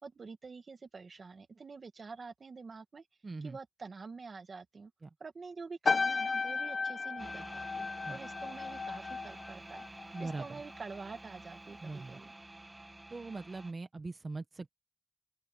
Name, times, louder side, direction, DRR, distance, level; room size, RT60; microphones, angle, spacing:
voice 1, 0.0-3.0 3.4-4.9 5.2-9.8 10.2-12.3, right 4 dB, 85° right, 1.7 m, -47 dB
voice 2, 3.2-3.6 5.0-5.1 8.1-8.2 10.1-10.6 11.8-12.2 13.1-14.7, right 3 dB, 60° right, 1.4 m, -41 dB
sound 1, 5.8-10.5 10.7-11.1, left 4 dB, 80° left, 0.4 m, -35 dB
sound 2, 7.2-13.7, right 2 dB, 30° right, 2.1 m, -49 dB
open air
wide cardioid pair, 70°, 0 cm